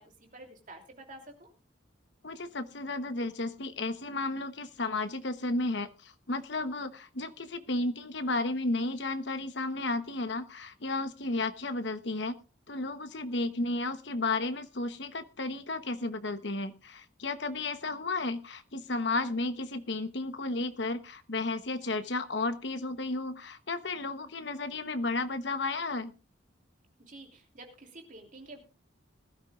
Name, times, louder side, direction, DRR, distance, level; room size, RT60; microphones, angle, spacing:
voice 1, 0.0-1.5 27.0-28.6, right 2 dB, 40° right, 3 dB, 3.0 m, -49 dB
voice 2, 2.2-12.4 12.7-26.1, left 2 dB, 60° left, 10 dB, 1.1 m, -33 dB
20.0 x 12.5 x 2.5 m, 0.31 s
head